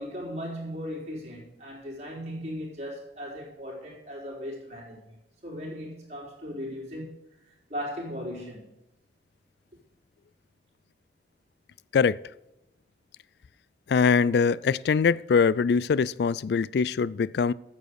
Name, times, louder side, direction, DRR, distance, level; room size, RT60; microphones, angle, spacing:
voice 1, 0.0-5.1 5.4-7.2 7.4-8.7, equal, 40° right, -3 dB, 4.1 m, -37 dB
voice 2, 13.9-17.5, left 5 dB, 65° left, 21 dB, 0.3 m, -23 dB
9.3 x 7.6 x 6.6 m, 0.92 s
head